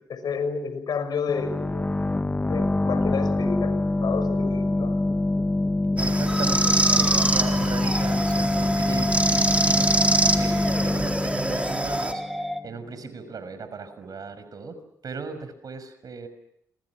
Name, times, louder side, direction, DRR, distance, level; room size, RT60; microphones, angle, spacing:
voice 1, 0.0-1.9 2.4-5.0, left 5 dB, 65° left, 11 dB, 6.1 m, -30 dB
sound 1, 1.3-12.8, left 2 dB, 20° left, 1.0 m, -25 dB
sound 2, 6.0-12.1, right 2 dB, 15° right, 3.8 m, -25 dB
voice 2, 6.0-9.9 10.4-12.2 12.6-14.8 15.0-16.3, right 4 dB, 55° right, 11 dB, 6.2 m, -36 dB
Musical instrument, 6.3-12.6, equal, ahead, 3.4 m, -31 dB
29.5 x 26.5 x 6.2 m, 0.75 s
supercardioid pair, 55°, 8 cm